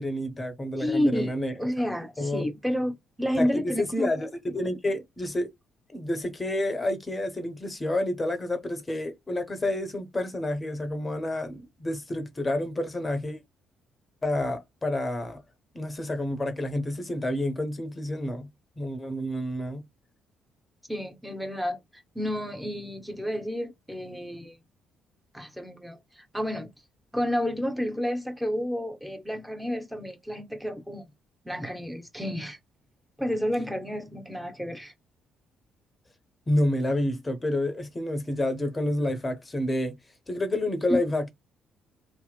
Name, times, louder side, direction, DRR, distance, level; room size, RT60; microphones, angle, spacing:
voice 1, 0.0-1.5 2.2-2.5 3.4-5.5 5.9-13.4 14.2-15.4 15.7-18.5 18.8-19.8 36.5-40.0 40.3-41.3, left 1 dB, 20° left, 0.8 m, -29 dB
voice 2, 0.8-4.1 20.9-21.8 22.1-24.6 25.3-26.7 27.1-31.0 31.4-32.6 33.2-34.9 40.9-41.0, equal, 5° right, 0.9 m, -30 dB
2.9 x 2.0 x 2.3 m
figure-of-eight pair, 45°, 0 cm